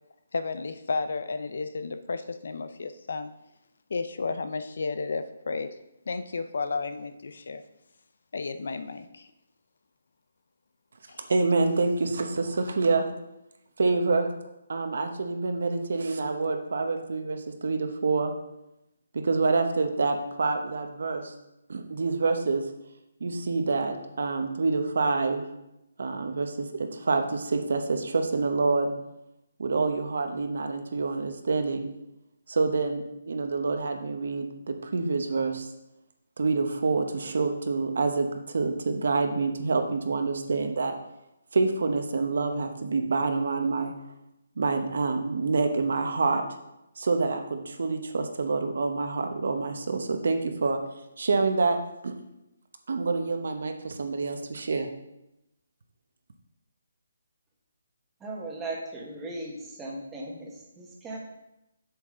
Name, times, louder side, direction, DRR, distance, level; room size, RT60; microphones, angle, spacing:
voice 1, 0.3-3.3 3.9-5.8 6.1-7.6 8.3-9.3 11.1-11.2, left 4 dB, 70° left, 11 dB, 0.6 m, -32 dB
voice 2, 11.3-13.1 13.8-14.3 14.7-18.3 19.1-21.3 21.7-22.7 23.2-25.4 26.0-28.9 29.6-31.9 32.5-35.7 36.4-40.9 41.5-43.9 44.6-46.4 47.0-50.8 51.2-51.8 52.0-52.1 52.9-54.9, right 3 dB, 70° right, 5 dB, 1.1 m, -27 dB
voice 3, 58.2-61.2, right 2 dB, 10° right, -3 dB, 1.5 m, -37 dB
7.3 x 7.2 x 3.8 m, 0.88 s
hypercardioid pair, 160°, 0 cm